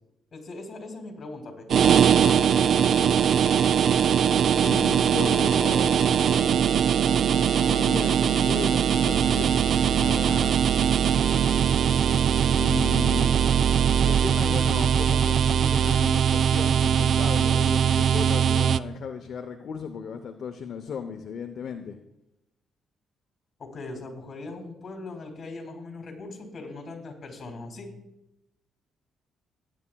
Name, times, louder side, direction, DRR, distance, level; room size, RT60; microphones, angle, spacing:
voice 1, 0.3-1.7 2.2-3.0 23.6-27.9, left 2 dB, 45° left, 3 dB, 3.1 m, -39 dB
sound 1, 1.7-18.8, right 8 dB, 60° right, 0.3 m, -21 dB
voice 2, 4.6-6.2 7.6-10.6 12.6-13.4 14.0-22.0, left 7 dB, 60° left, 6 dB, 0.7 m, -36 dB
17.0 x 9.8 x 2.3 m, 0.90 s
cardioid pair, 90°, 0 cm